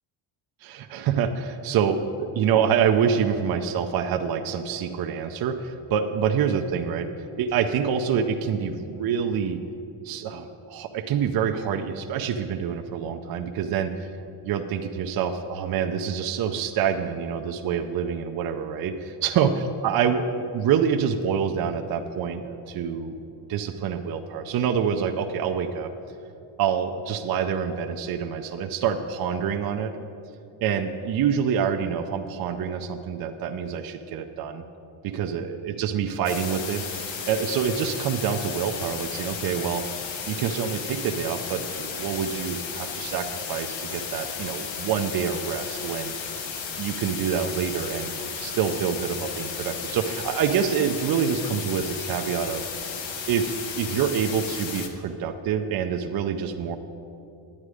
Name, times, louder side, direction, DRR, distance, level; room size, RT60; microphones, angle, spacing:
voice 1, 0.6-7.1 7.4-9.6 10.0-14.1 14.4-19.5 19.8-23.2 23.5-25.9 26.6-29.9 30.6-34.6 35.0-39.8 40.3-46.3 46.7-52.6 53.3-56.8, right 7 dB, 50° right, 6 dB, 0.5 m, -26 dB
sound 1, 36.2-54.9, left 6 dB, 65° left, 1.2 m, -34 dB
9.7 x 8.7 x 4.9 m, 2.7 s
cardioid pair, 125°, 49 cm